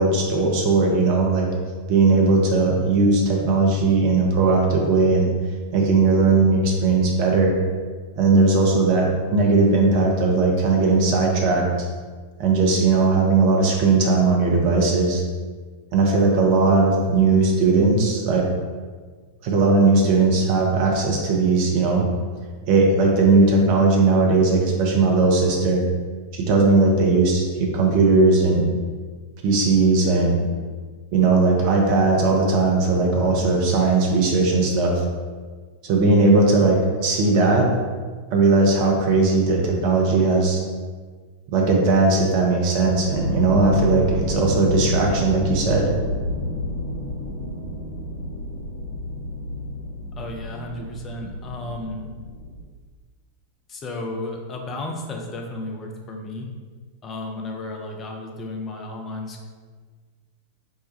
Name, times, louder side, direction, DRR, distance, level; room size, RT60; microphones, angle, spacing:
voice 1, 0.0-1.5 1.9-5.3 5.7-7.6 8.2-11.7 12.4-15.2 15.9-18.4 19.4-22.0 22.7-25.8 26.3-28.6 29.4-30.4 31.1-35.0 35.8-37.7 38.3-40.6 41.5-45.9, right 3 dB, 45° right, 0 dB, 0.6 m, -18 dB
sound 1, 42.8-52.6, left 1 dB, 70° left, 1.0 m, -29 dB
voice 2, 50.2-52.0 53.7-56.5 57.0-59.4, left 2 dB, 25° left, 1 dB, 0.5 m, -33 dB
4.6 x 2.2 x 2.8 m, 1.5 s
figure-of-eight pair, 90°, 0 cm